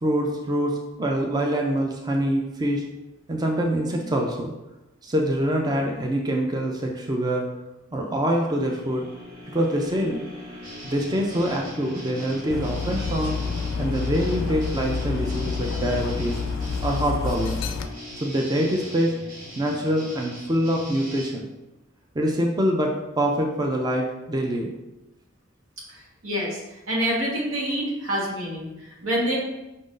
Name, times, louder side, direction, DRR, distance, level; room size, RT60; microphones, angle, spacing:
voice 1, 0.0-2.8 3.3-4.5 5.0-7.5 7.9-9.1 9.5-10.2 10.8-13.4 13.8-16.4 16.8-17.6 18.2-19.2 19.6-21.5 22.1-24.7, right 1 dB, 20° right, 1 dB, 0.4 m, -25 dB
sound 1, 8.4-20.5 21.0-21.1, left 3 dB, 65° right, 1.3 m, -42 dB
sound 2, 10.6-21.3, right 1 dB, 45° right, 1.1 m, -42 dB
Dog, 12.5-17.9, left 5 dB, 70° left, 0.4 m, -28 dB
voice 2, 25.9-29.4, equal, 90° right, -3 dB, 1.3 m, -27 dB
5.1 x 2.6 x 3.7 m, 0.99 s
head